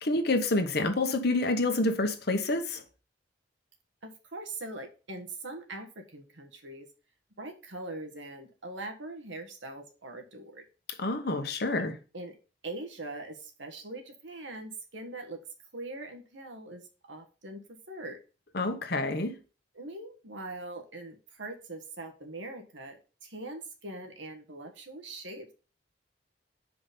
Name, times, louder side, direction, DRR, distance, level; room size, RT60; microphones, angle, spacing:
voice 1, 0.0-2.8 11.0-11.9 18.5-19.3, left 2 dB, 60° left, 1.1 m, -28 dB
voice 2, 4.0-6.9 7.4-10.6 12.1-12.3 12.6-15.4 15.7-17.6 17.9-18.2 19.7-25.5, right 2 dB, 80° right, 1.5 m, -42 dB
5.9 x 5.0 x 5.3 m
head